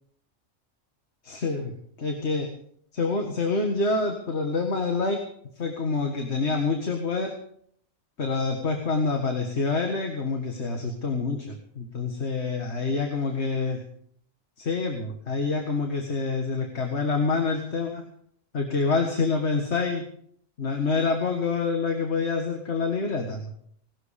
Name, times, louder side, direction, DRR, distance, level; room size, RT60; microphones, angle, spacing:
voice 1, 1.2-1.7 2.0-2.5 2.9-5.2 5.6-7.3 8.2-13.8 14.6-18.0 18.5-20.0 20.6-23.5, left 4 dB, 65° left, 3 dB, 2.0 m, -27 dB
18.5 x 12.5 x 5.1 m, 0.65 s
omnidirectional pair, 1.3 m